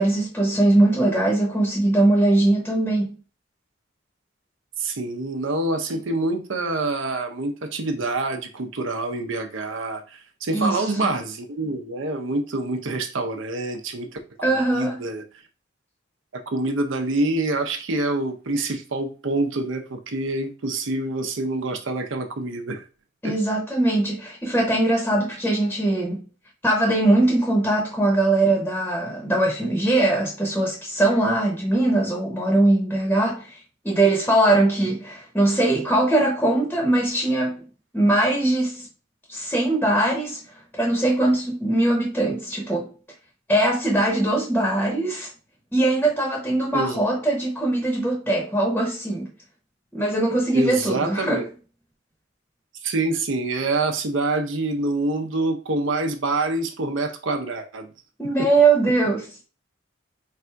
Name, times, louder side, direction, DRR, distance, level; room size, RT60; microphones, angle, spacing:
voice 1, 0.0-3.1 10.5-10.8 14.4-15.0 23.2-26.2 26.6-33.6 33.8-37.7 37.9-38.9 39.3-40.4 40.7-42.9 43.5-45.3 45.7-49.3 49.9-51.4 58.2-59.3, right 2 dB, 10° left, 0.8 m, -21 dB
voice 2, 4.8-14.2 14.7-15.2 16.5-22.8 23.2-23.3 46.7-47.0 50.5-51.4 52.8-57.9 58.4-58.5, right 2 dB, 75° right, 0.7 m, -26 dB
3.3 x 2.5 x 4.5 m
head